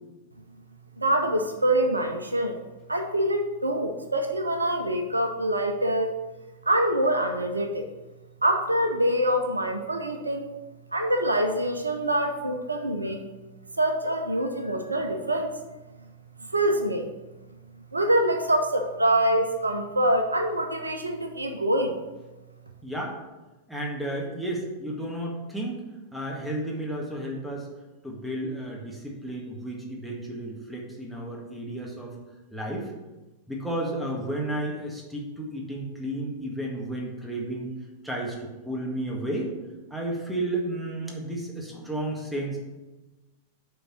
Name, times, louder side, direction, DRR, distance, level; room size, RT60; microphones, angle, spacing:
voice 1, 1.0-2.6 2.9-6.1 6.6-7.8 8.4-10.5 10.9-13.2 13.8-15.6 16.4-17.1 17.9-22.0, right 1 dB, 85° right, 5 dB, 0.6 m, -25 dB
voice 2, 22.8-23.1 23.7-25.8 26.1-27.7 28.0-32.1 32.5-32.9 33.5-37.7 38.0-39.5 39.9-42.6, right 1 dB, 5° right, -2 dB, 1.7 m, -32 dB
7.0 x 3.9 x 6.2 m, 1.1 s
figure-of-eight pair, 95°, 0 cm